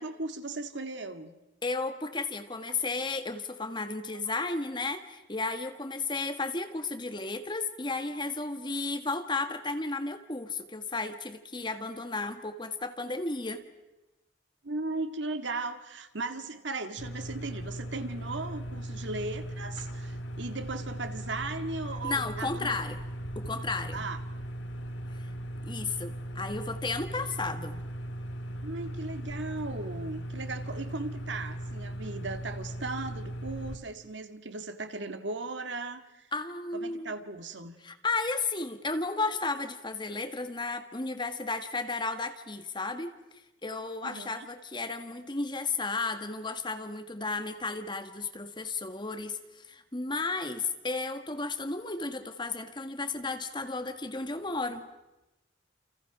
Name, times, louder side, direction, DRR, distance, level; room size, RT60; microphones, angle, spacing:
voice 1, 0.0-1.3 14.6-22.8 23.9-24.2 28.6-36.3 36.7-37.8 44.0-44.5, right 3 dB, 70° right, 8 dB, 1.8 m, -37 dB
voice 2, 1.6-13.6 22.0-23.0 23.3-24.0 25.6-27.8 36.3-37.1 37.8-43.1 43.6-54.9, left 3 dB, 25° left, 7 dB, 1.7 m, -33 dB
sound 1, 17.0-33.8, right 1 dB, 70° left, 2.0 m, -38 dB
29.0 x 28.5 x 6.1 m, 0.99 s
head